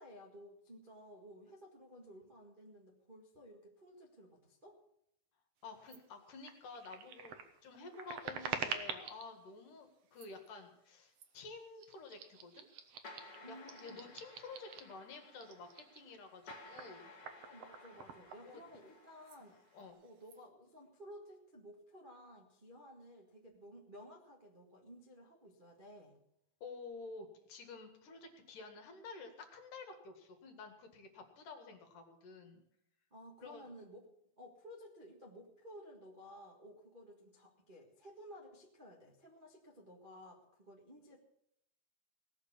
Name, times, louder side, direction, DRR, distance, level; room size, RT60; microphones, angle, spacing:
voice 1, 0.0-4.8 13.4-14.1 17.4-19.6 20.0-26.2 33.1-41.2, equal, 45° right, -2 dB, 0.6 m, -55 dB
voice 2, 5.6-12.7 13.5-17.1 18.4-18.6 19.4-20.0 26.6-32.6 33.4-33.7, left 4 dB, 60° left, 5 dB, 3.2 m, -51 dB
sound 1, 5.9-6.0 6.4-9.3 10.1-10.5 11.1-11.4 11.8-15.0 15.3-18.9 19.2-19.4 19.7-20.4, right 7 dB, 65° right, 1.6 m, -46 dB
sound 2, 13.0-19.9, left 2 dB, 40° left, 2.5 m, -57 dB
18.5 x 6.6 x 9.6 m, 0.78 s
omnidirectional pair, 4.4 m